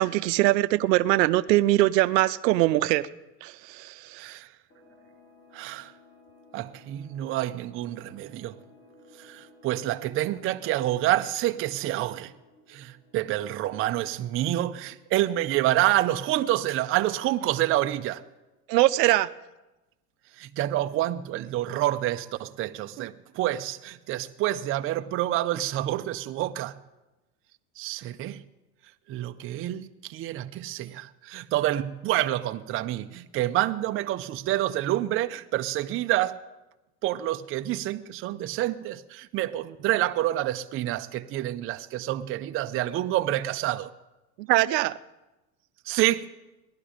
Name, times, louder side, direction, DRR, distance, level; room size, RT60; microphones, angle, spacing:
voice 1, 0.0-3.1 3.4-4.4 18.7-19.3 44.4-45.0, right 17 dB, 85° right, 0.7 m, -22 dB
voice 2, 4.2-4.5 5.5-5.9 6.5-8.6 9.2-12.3 12.7-18.2 20.4-26.8 27.8-28.4 29.1-36.4 37.0-43.9 45.9-46.3, right 14 dB, 30° right, 0.5 m, -28 dB
sound 1, 4.7-14.0, left 2 dB, 80° left, 4.5 m, -56 dB
18.0 x 11.5 x 5.0 m
supercardioid pair, 115°, 49 cm